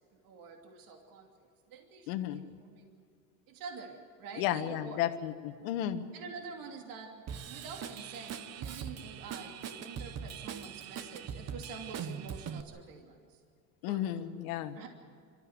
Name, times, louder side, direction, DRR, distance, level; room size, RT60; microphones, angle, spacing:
voice 1, 0.2-1.3 1.7-3.0 3.5-5.1 6.1-13.4 13.9-14.3 14.7-14.9, right 5 dB, 55° right, 2 dB, 2.9 m, -47 dB
voice 2, 2.1-2.4 4.4-6.0 13.8-14.8, left 12 dB, 80° left, 9 dB, 1.6 m, -33 dB
Drum kit / Drum, 7.3-12.6, right 8 dB, 40° right, 1.2 m, -41 dB
25.0 x 14.0 x 9.6 m, 2.3 s
supercardioid pair, 115°, 41 cm